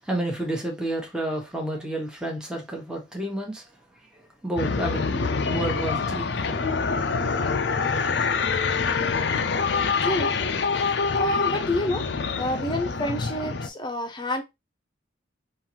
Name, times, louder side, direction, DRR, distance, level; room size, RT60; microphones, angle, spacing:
voice 1, 0.0-3.6 4.4-6.7, right 1 dB, 5° right, 1.1 m, -30 dB
sound 1, 4.6-13.7, left 5 dB, 60° left, 0.5 m, -25 dB
voice 2, 11.1-12.1 12.4-14.4, left 1 dB, 25° left, 0.8 m, -28 dB
5.4 x 2.6 x 3.0 m
head